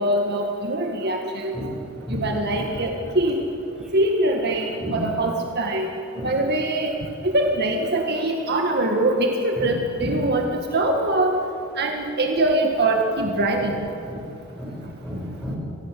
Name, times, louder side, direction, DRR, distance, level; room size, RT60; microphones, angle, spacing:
voice 1, 0.0-1.6 2.1-3.4 3.9-5.9 6.2-7.0 7.2-10.5 10.7-11.3 11.8-13.8, right 1 dB, 55° right, 2 dB, 1.9 m, -23 dB
voice 2, 4.8-5.1 6.1-6.4 9.6-9.7 10.0-10.1 14.1-14.3 14.6-15.6, equal, 5° right, -3 dB, 7.0 m, -32 dB
25.0 x 18.0 x 8.5 m, 2.7 s
head